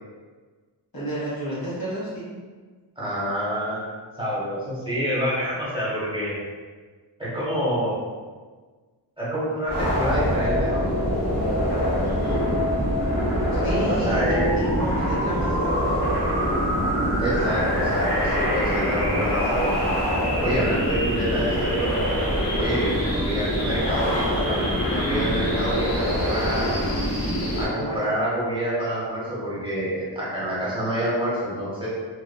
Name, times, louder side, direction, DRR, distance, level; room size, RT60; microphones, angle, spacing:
voice 1, 0.9-2.3 12.0-12.5 13.5-16.0 27.5-28.3, right 1 dB, 50° left, -8 dB, 1.2 m, -31 dB
voice 2, 3.0-3.9 4.2-6.4 7.2-8.0 9.2-10.8 14.0-14.5 17.2-19.8 20.4-21.9 22.6-24.6 24.9-26.8 27.6-31.9, equal, 10° right, -9 dB, 1.2 m, -27 dB
sound 1, 9.7-27.7, equal, 80° left, 1.0 m, -24 dB
2.7 x 2.4 x 2.2 m, 1.4 s
cardioid pair, 50°, 47 cm